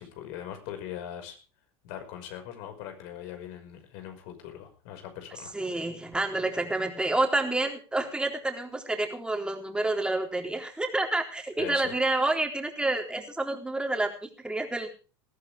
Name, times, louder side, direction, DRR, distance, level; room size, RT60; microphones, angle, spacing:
voice 1, 0.0-1.4 1.8-5.5 11.6-12.0, left 10 dB, 65° left, 6 dB, 5.6 m, -41 dB
voice 2, 5.5-14.1 14.4-15.0, right 2 dB, 5° right, 3 dB, 3.8 m, -28 dB
20.0 x 13.5 x 3.6 m, 0.35 s
supercardioid pair, 115°, 14 cm